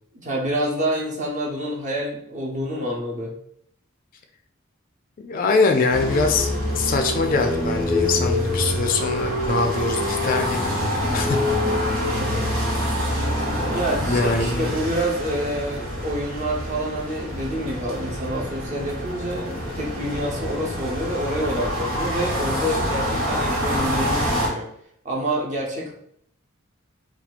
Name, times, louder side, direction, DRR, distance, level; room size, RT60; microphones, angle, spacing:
voice 1, 0.1-3.3 12.1-12.5 13.7-24.7 25.0-25.9, equal, 35° right, -2 dB, 0.9 m, -27 dB
voice 2, 5.2-6.5 6.8-10.7 11.1-11.4 14.0-14.7, left 4 dB, 40° left, 5 dB, 0.3 m, -23 dB
sound 1, 5.9-24.5, left 1 dB, 80° right, 1.2 m, -26 dB
2.8 x 2.3 x 4.1 m, 0.69 s
head